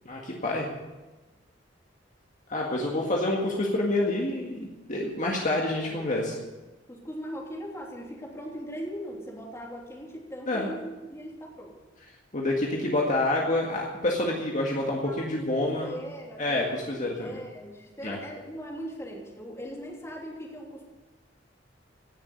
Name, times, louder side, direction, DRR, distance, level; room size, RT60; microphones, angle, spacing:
voice 1, 0.1-0.7 2.5-6.4 10.5-10.7 12.3-15.9 16.4-17.4 18.0-18.2, left 2 dB, 40° left, -1 dB, 1.9 m, -28 dB
voice 2, 2.6-3.0 5.7-6.1 6.9-11.7 14.6-15.2 15.6-16.6 16.9-20.9, equal, 15° left, -2 dB, 3.2 m, -40 dB
17.0 x 7.3 x 8.4 m, 1.2 s
head